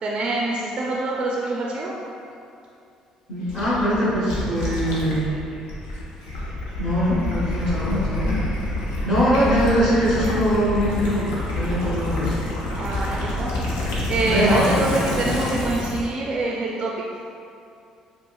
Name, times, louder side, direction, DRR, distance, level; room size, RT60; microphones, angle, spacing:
voice 1, 0.0-1.9 12.7-13.6 14.1-16.9, right 2 dB, 50° right, -3 dB, 0.4 m, -25 dB
voice 2, 3.3-5.3 6.8-8.4 9.0-12.4 14.2-14.7, equal, 50° left, -11 dB, 1.1 m, -22 dB
Gurgling / Liquid, 3.5-16.1, left 1 dB, 85° left, 0.6 m, -27 dB
4.7 x 2.0 x 2.3 m, 2.6 s
hypercardioid pair, 65°, 2 cm